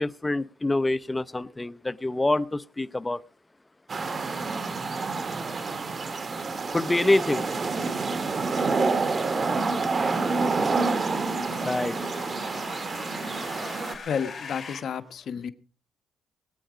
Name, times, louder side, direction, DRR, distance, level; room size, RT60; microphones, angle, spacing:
voice 1, 0.0-3.2 6.7-7.5 11.6-12.0, left 2 dB, 15° left, 16 dB, 0.8 m, -26 dB
sound 1, 3.9-13.9, right 4 dB, 35° right, 1.7 m, -28 dB
sound 2, 6.1-14.8, left 5 dB, 35° left, 4.4 m, -44 dB
voice 2, 14.1-15.5, left 7 dB, 60° left, 11 dB, 1.1 m, -31 dB
20.5 x 9.2 x 5.0 m, 0.39 s
cardioid pair, 90°, 0 cm